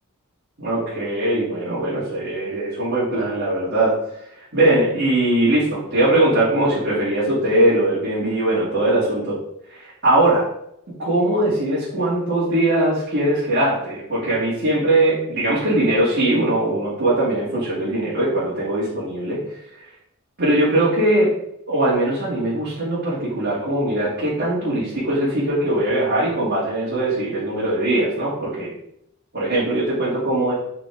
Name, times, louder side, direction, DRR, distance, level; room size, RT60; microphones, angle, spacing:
voice 1, 0.6-4.0 4.5-9.4 9.7-10.4 11.0-19.4 19.7-19.8 20.4-21.3 21.7-28.7 29.3-30.5, right 1 dB, 55° right, -10 dB, 2.7 m, -20 dB
7.8 x 5.1 x 3.7 m, 0.75 s
head